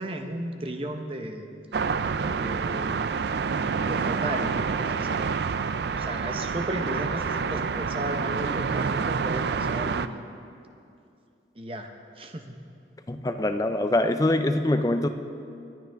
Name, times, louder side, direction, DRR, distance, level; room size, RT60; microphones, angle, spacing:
voice 1, 0.0-1.5 2.3-5.1 5.8-10.3 11.5-11.9 12.2-12.6, right 1 dB, 30° right, 5 dB, 0.8 m, -35 dB
sound 1, 1.7-10.1, right 5 dB, 70° right, 0.4 m, -28 dB
voice 2, 13.1-15.1, left 1 dB, 20° left, 8 dB, 0.5 m, -24 dB
24.0 x 9.2 x 3.5 m, 2.5 s
head